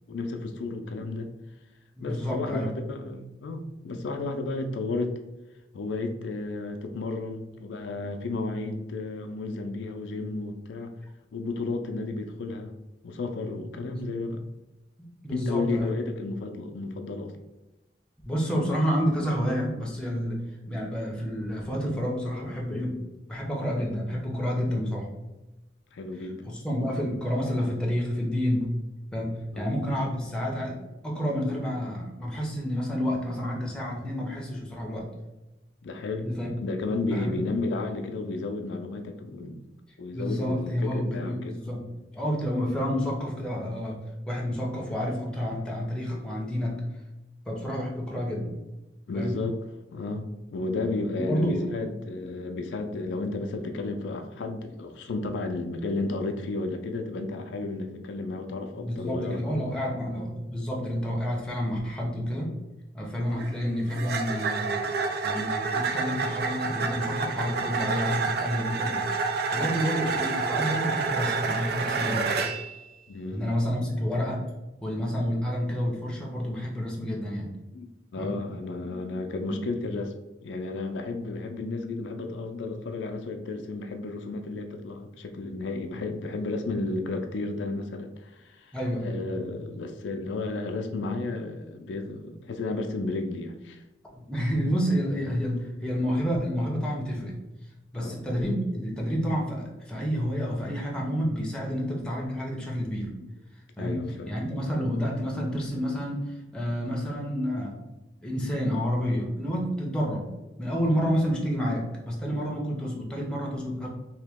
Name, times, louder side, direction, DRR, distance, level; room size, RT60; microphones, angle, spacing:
voice 1, 0.1-1.3 2.0-5.2 5.7-10.9 11.3-12.7 13.0-14.4 15.3-17.3 25.9-26.4 29.5-30.0 35.8-36.3 36.6-39.6 40.0-41.7 49.1-49.6 49.9-59.4 73.1-73.4 77.7-80.1 80.4-88.7 89.0-93.8 97.9-98.2 103.8-104.3 111.0-111.1, left 3 dB, 75° left, 5 dB, 0.4 m, -33 dB
voice 2, 2.0-2.7 13.9-14.0 15.0-15.9 18.2-23.0 23.3-25.1 26.5-28.7 29.1-30.8 31.0-35.1 36.2-36.5 37.1-37.4 40.1-44.0 44.3-46.8 47.5-48.5 49.1-49.4 51.2-51.6 58.8-62.5 62.9-64.8 65.2-69.1 69.5-72.4 73.3-74.5 74.8-77.5 78.2-78.4 79.5-79.6 88.7-89.2 94.1-97.4 97.9-103.1 103.8-107.8 108.2-110.3 110.6-113.9, equal, 5° left, -2 dB, 0.6 m, -29 dB
sound 1, 63.3-72.7, right 4 dB, 55° right, 0.4 m, -29 dB
2.9 x 2.8 x 3.5 m, 1.0 s
head